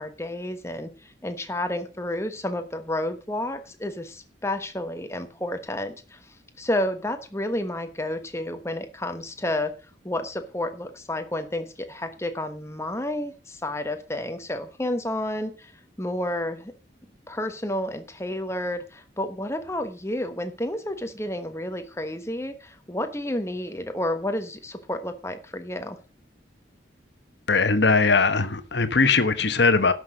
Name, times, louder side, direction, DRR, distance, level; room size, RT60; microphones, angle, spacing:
voice 1, 0.0-6.2 6.6-9.7 10.0-15.7 16.0-16.7 17.3-26.0, left 1 dB, 15° left, 1.2 m, -30 dB
voice 2, 27.5-29.9, left 4 dB, 65° left, 1.2 m, -20 dB
11.5 x 6.2 x 6.2 m
head